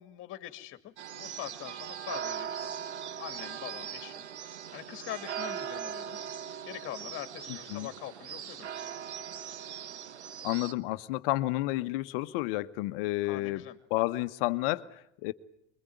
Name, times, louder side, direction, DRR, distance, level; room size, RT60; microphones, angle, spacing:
voice 1, 0.0-2.7 3.2-4.3 4.7-6.2 6.7-8.7 13.2-13.8, left 13 dB, 40° left, 2.3 m, -43 dB
sound 1, 1.0-10.7, right 8 dB, 90° right, 1.3 m, -40 dB
voice 2, 7.5-7.9 10.4-13.6 13.9-15.3, left 18 dB, 55° left, 1.2 m, -31 dB
24.0 x 22.5 x 9.4 m
hypercardioid pair, 105°, 33 cm